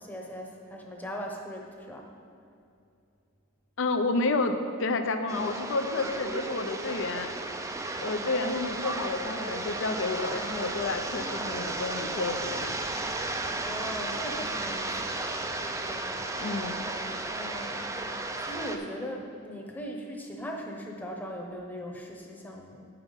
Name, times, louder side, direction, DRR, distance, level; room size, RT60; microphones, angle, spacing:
voice 1, 0.0-2.1 13.4-15.3 15.9-16.0 17.2-17.8 18.2-22.9, equal, 10° left, 0 dB, 0.9 m, -39 dB
voice 2, 3.8-7.3 8.0-12.7 16.4-16.8, left 3 dB, 65° left, 8 dB, 0.6 m, -30 dB
sound 1, 5.3-18.8, right 2 dB, 15° right, 0.4 m, -34 dB
9.0 x 5.7 x 5.3 m, 2.5 s
head